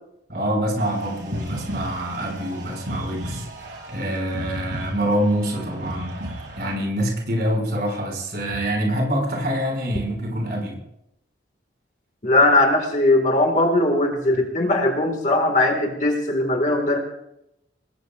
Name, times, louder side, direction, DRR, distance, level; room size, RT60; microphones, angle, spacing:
voice 1, 0.3-10.8 14.3-14.4, right 1 dB, 55° right, 0 dB, 6.4 m, -26 dB
sound 1, 0.8-6.8, right 1 dB, 75° right, 4.9 m, -35 dB
voice 2, 12.2-17.0, left 2 dB, 40° left, 3 dB, 2.1 m, -19 dB
27.0 x 20.0 x 2.5 m, 0.83 s
head